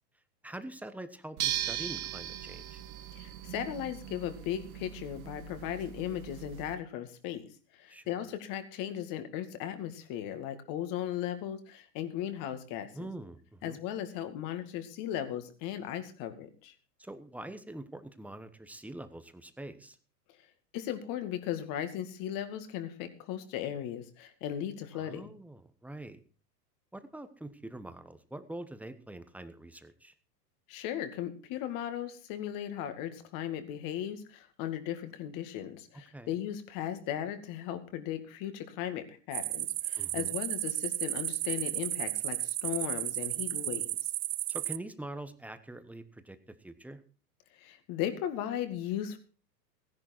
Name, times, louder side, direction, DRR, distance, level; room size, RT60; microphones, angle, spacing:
voice 1, 0.4-2.8 7.9-8.1 12.9-13.8 17.0-20.0 24.9-26.2 26.9-30.1 35.9-36.3 40.0-40.3 44.5-47.0, right 1 dB, 5° right, 10 dB, 1.1 m, -44 dB
sound 1, 1.4-6.8, right 12 dB, 60° right, 1.6 m, -39 dB
voice 2, 3.1-7.5 7.7-13.1 13.6-16.7 20.7-25.2 30.7-43.9 47.6-49.2, left 10 dB, 45° left, 9 dB, 2.2 m, -37 dB
sound 2, 39.3-44.8, right 15 dB, 80° right, 0.7 m, -33 dB
16.0 x 10.5 x 4.5 m, 0.38 s
hypercardioid pair, 110°, 48 cm